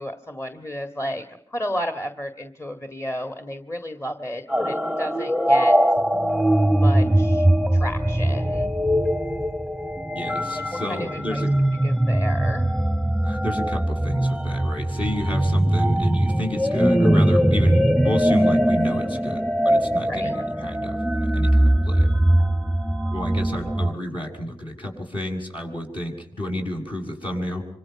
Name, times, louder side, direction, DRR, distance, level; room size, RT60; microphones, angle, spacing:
voice 1, 0.0-5.8 6.6-7.5 7.7-8.7 10.1-11.4 11.8-12.7 20.0-20.3, equal, 30° left, 6 dB, 1.8 m, -32 dB
sound 1, 4.5-23.9, right 1 dB, ahead, 0.9 m, -21 dB
voice 2, 10.1-11.5 13.2-22.1 23.1-27.6, left 1 dB, 60° left, 1 dB, 7.1 m, -31 dB
26.5 x 25.5 x 5.9 m, 0.66 s
cardioid pair, 60°, 10 cm